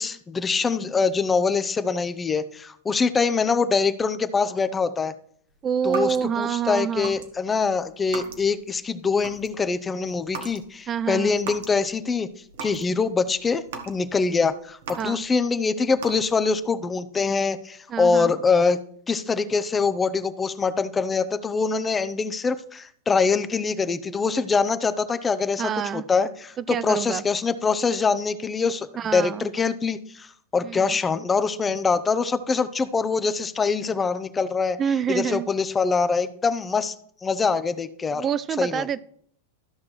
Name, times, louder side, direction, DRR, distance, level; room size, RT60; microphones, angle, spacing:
voice 1, 0.0-5.1 5.8-12.3 12.6-18.8 19.1-30.3 30.5-34.8 35.1-36.9 37.2-38.2 38.6-38.8, left 4 dB, 15° left, 12 dB, 0.7 m, -24 dB
voice 2, 5.6-7.2 10.9-11.4 15.0-15.2 17.9-18.3 25.6-26.0 26.7-27.2 29.0-29.5 30.6-30.9 34.8-35.5 38.1-39.0, right 8 dB, 30° right, 15 dB, 0.3 m, -27 dB
sound 1, 5.8-6.5 7.0-7.3 7.6-8.7 9.0-9.7 10.3-10.7 11.0-11.8 12.2-12.9 13.3-15.5 16.0-16.6, right 5 dB, 75° right, 1.5 m, -38 dB
13.5 x 5.9 x 3.2 m, 0.62 s
hypercardioid pair, 115°, 0 cm